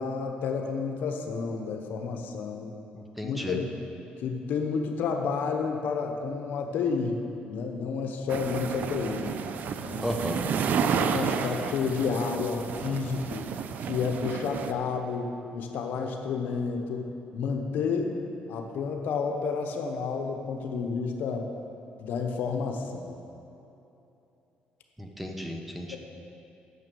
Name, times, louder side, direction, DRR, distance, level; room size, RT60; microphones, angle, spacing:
voice 1, 0.0-2.7 3.2-3.7 4.2-9.3 9.8-10.1 10.8-13.5 13.9-18.1 18.5-21.5 22.0-23.2, left 5 dB, 75° left, 3 dB, 1.0 m, -30 dB
voice 2, 2.9-3.6 10.0-10.4 25.0-26.0, equal, 5° right, 2 dB, 1.0 m, -34 dB
sound 1, 8.3-14.7, right 7 dB, 60° right, 0.5 m, -31 dB
9.5 x 6.8 x 7.0 m, 2.9 s
cardioid pair, 120°, 3 cm